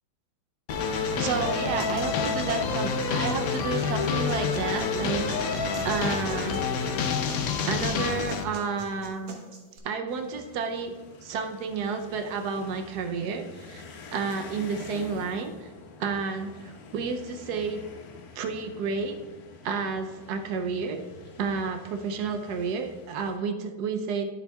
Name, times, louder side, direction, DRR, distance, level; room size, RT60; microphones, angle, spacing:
sound 1, 0.7-8.4, left 5 dB, 80° left, 0.8 m, -28 dB
voice 1, 1.0-6.6 7.3-9.4 9.8-10.9 11.2-13.8 14.1-15.7 16.0-17.8 18.4-19.2 19.6-21.0 21.4-24.4, right 5 dB, 70° right, 6 dB, 1.0 m, -31 dB
sound 2, 1.8-9.8, right 3 dB, 85° right, 1.9 m, -44 dB
sound 3, 10.1-23.4, left 4 dB, 60° left, 1.0 m, -47 dB
11.0 x 6.9 x 2.3 m, 1.2 s
omnidirectional pair, 2.3 m